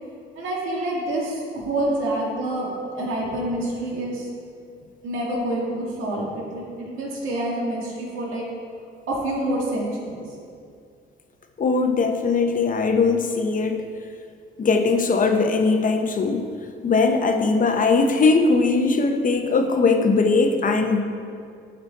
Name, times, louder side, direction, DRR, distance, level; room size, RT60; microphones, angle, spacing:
voice 1, 0.4-2.7 3.0-4.3 5.0-8.5 9.1-10.2, right 1 dB, 85° right, -3 dB, 1.8 m, -27 dB
voice 2, 11.6-13.8 14.6-16.4 16.8-21.0, left 4 dB, 40° left, 5 dB, 0.9 m, -20 dB
11.5 x 4.4 x 4.1 m, 2.3 s
cardioid pair, 90°, 20 cm